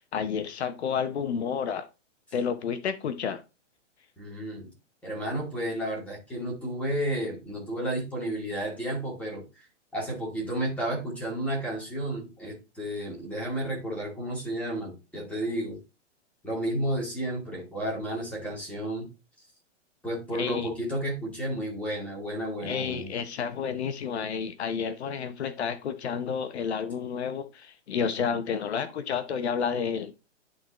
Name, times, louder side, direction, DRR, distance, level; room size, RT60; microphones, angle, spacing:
voice 1, 0.1-1.9 2.3-3.4 20.4-20.7 22.6-30.1, left 7 dB, 60° left, 0.9 m, -30 dB
voice 2, 4.2-4.7 5.0-9.7 9.9-15.8 16.4-19.1 20.0-23.1, right 1 dB, 5° left, 2.2 m, -32 dB
11.5 x 3.9 x 3.0 m
hypercardioid pair, 160°, 37 cm